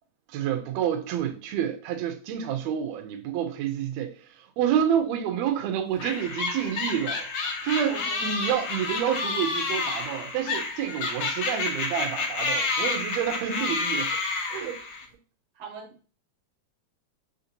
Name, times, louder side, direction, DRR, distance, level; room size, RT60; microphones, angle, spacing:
voice 1, 0.3-7.3 7.6-14.2 14.5-14.8, right 9 dB, 80° right, 1.7 m, -29 dB
sound 1, 6.0-15.0, left 3 dB, 80° left, 1.1 m, -30 dB
voice 2, 7.8-8.3 15.6-16.1, right 6 dB, 60° right, 1.7 m, -39 dB
5.0 x 2.6 x 2.7 m
omnidirectional pair, 3.4 m